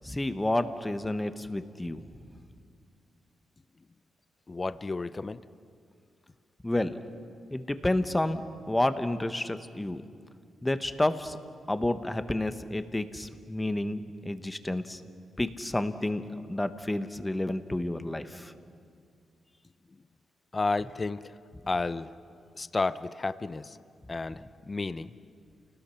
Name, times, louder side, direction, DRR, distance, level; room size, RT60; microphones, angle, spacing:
voice 1, 0.0-2.1 6.6-7.0 7.5-8.4 8.7-10.0 10.6-11.4 11.7-15.0 15.4-18.5, left 1 dB, 15° left, 10 dB, 1.1 m, -30 dB
voice 2, 4.5-5.4 20.5-21.2 21.7-22.1 22.6-23.8 24.1-24.4 24.7-25.1, left 3 dB, 30° left, 14 dB, 0.6 m, -31 dB
29.5 x 19.5 x 5.8 m, 2.3 s
cardioid pair, 95°, 0 cm